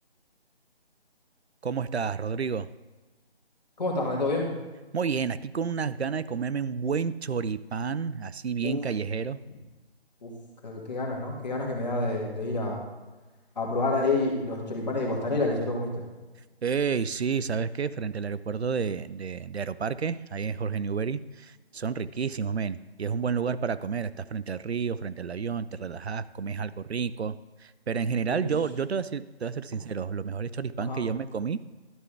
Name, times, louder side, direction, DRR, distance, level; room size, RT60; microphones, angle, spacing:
voice 1, 1.6-2.7 4.9-9.4 16.6-27.4 27.6-31.7, right 6 dB, 80° right, 16 dB, 0.5 m, -30 dB
voice 2, 3.8-4.5 8.6-8.8 10.2-10.3 10.6-12.8 13.6-16.0 28.3-28.5 30.8-31.0, left 2 dB, 40° left, -1 dB, 2.1 m, -28 dB
12.0 x 6.6 x 3.4 m, 1.2 s
figure-of-eight pair, 155°, 32 cm